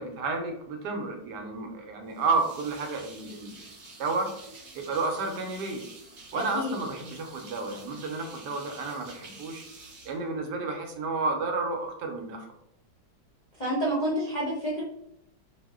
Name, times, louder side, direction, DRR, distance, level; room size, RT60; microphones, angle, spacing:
voice 1, 0.0-3.6 4.0-4.3 4.7-5.9 6.3-9.7 10.1-12.5, right 3 dB, 80° right, 3 dB, 1.2 m, -31 dB
sound 1, 2.1-10.9, right 3 dB, 50° right, 1.0 m, -49 dB
voice 2, 6.3-6.7 13.6-14.8, equal, 50° left, -7 dB, 0.5 m, -29 dB
2.8 x 2.1 x 3.4 m, 0.75 s
omnidirectional pair, 1.8 m